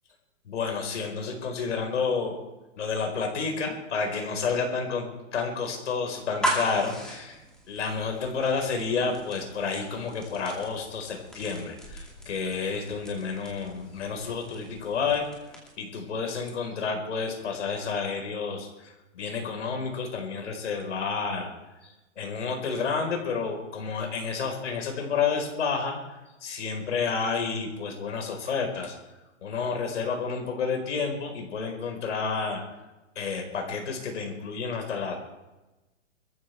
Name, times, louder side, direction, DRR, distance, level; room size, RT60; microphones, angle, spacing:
voice 1, 0.5-2.4 2.8-5.0 5.3-7.4 7.7-15.2 15.8-21.5 21.8-26.0 26.4-28.9 29.4-32.6 33.1-35.2, left 5 dB, 70° left, 3 dB, 4.8 m, -30 dB
burning matchstick, 6.4-15.9, equal, ahead, 2.4 m, -38 dB
23.5 x 14.5 x 3.5 m, 1.0 s
hypercardioid pair, 170°, 37 cm